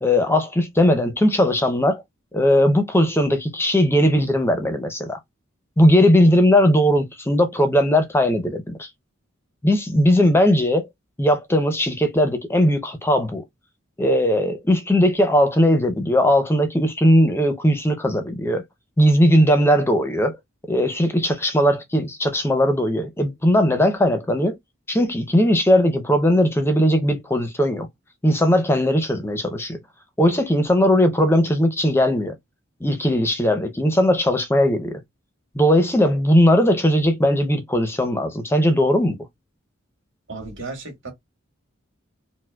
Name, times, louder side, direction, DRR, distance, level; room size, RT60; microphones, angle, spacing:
voice 1, 0.0-2.0 2.3-5.2 5.8-8.9 9.6-10.9 11.2-13.4 14.0-18.6 19.0-20.3 20.7-24.6 24.9-27.9 28.2-29.8 30.2-32.3 32.8-35.0 35.5-39.2, equal, 10° left, 0.6 m, -18 dB
voice 2, 40.3-41.1, right 3 dB, 65° right, 2.0 m, -34 dB
4.5 x 2.1 x 2.2 m
head